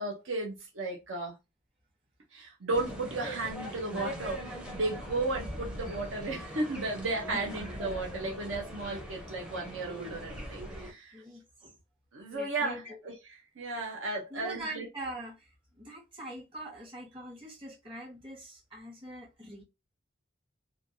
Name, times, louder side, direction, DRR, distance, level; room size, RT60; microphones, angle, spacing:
voice 1, 0.0-1.3 2.3-11.2 12.1-13.2 13.6-14.9, right 2 dB, 70° right, 0.7 m, -34 dB
sound 1, 2.7-10.9, equal, 5° right, 0.5 m, -41 dB
voice 2, 11.1-11.8 12.3-13.0 14.1-19.6, right 1 dB, 25° right, 1.1 m, -43 dB
3.1 x 2.3 x 2.6 m
head